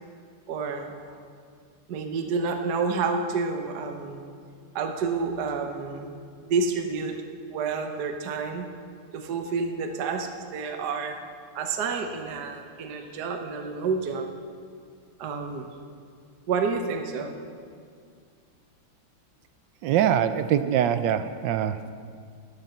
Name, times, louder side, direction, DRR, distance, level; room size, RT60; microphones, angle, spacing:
voice 1, 0.5-1.2 1.9-4.2 4.7-6.2 6.4-7.2 7.5-8.7 9.1-11.2 11.5-14.3 15.2-15.7 16.5-17.3, right 4 dB, 60° right, 5 dB, 1.4 m, -29 dB
voice 2, 19.8-21.8, right 10 dB, 75° right, 12 dB, 1.1 m, -23 dB
12.5 x 10.5 x 7.0 m, 2.2 s
omnidirectional pair, 2.3 m